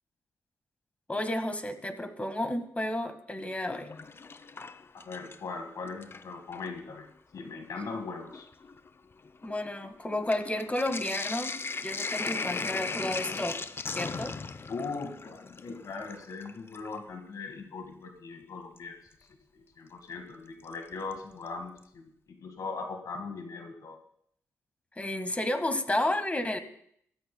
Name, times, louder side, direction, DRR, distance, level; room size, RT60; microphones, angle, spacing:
voice 1, 1.1-3.9 9.4-13.6 13.9-14.4 25.0-26.6, left 1 dB, 20° left, 9 dB, 1.7 m, -32 dB
Sink (filling or washing), 3.5-5.5 5.9-6.7 7.5-7.6 7.9-17.0 18.8-18.9 20.7-21.1 21.5-21.6 21.8-21.9, left 4 dB, 40° left, 0.6 m, -38 dB
voice 2, 5.1-8.5 14.7-19.0 19.5-22.1 22.4-24.0, left 4 dB, 70° left, 5 dB, 1.9 m, -39 dB
22.0 x 13.5 x 2.3 m, 0.67 s
supercardioid pair, 50°, 6 cm